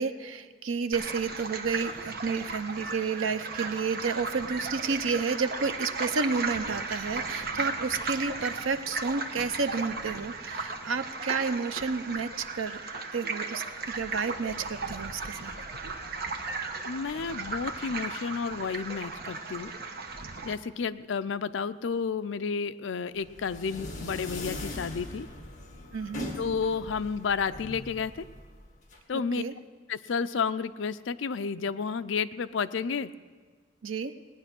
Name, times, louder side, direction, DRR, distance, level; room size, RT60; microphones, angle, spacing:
voice 1, 0.0-12.8 13.1-15.5 25.9-26.3 29.4-29.5 33.8-34.1, right 4 dB, 85° right, 10 dB, 0.7 m, -31 dB
sound 1, 0.9-20.5, right 3 dB, 50° right, 1.0 m, -36 dB
voice 2, 16.9-19.7 20.4-25.3 26.4-28.2 29.1-29.4 29.9-33.1, left 5 dB, 70° left, 13 dB, 0.5 m, -31 dB
sound 2, 23.2-29.0, left 2 dB, 40° left, 2.0 m, -40 dB
18.0 x 9.8 x 6.0 m, 1.5 s
head